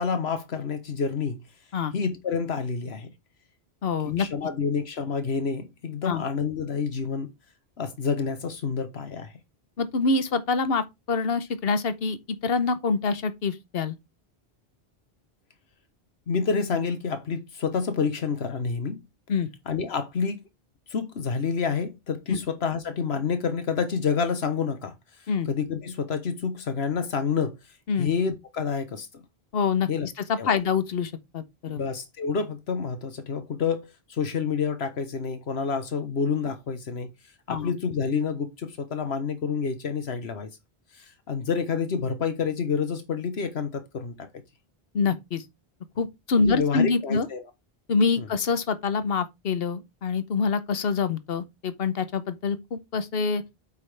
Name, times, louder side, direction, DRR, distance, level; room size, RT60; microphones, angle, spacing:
voice 1, 0.0-1.4 1.9-3.1 4.0-7.3 7.8-9.3 16.3-19.0 19.7-20.4 20.9-24.9 25.5-27.6 28.0-29.2 29.9-30.1 30.4-30.5 31.7-37.1 37.5-40.5 40.9-44.3 46.4-47.4 48.2-48.3, left 5 dB, 85° left, 1.3 m, -28 dB
voice 2, 3.8-4.3 6.0-6.2 9.8-12.2 12.4-14.0 19.3-19.5 22.3-22.4 25.3-25.5 27.9-28.1 29.5-29.9 30.3-31.8 37.5-37.7 44.9-45.5 46.0-47.3 47.9-53.4, left 5 dB, 70° left, 1.2 m, -26 dB
8.4 x 5.6 x 3.4 m
omnidirectional pair, 1.1 m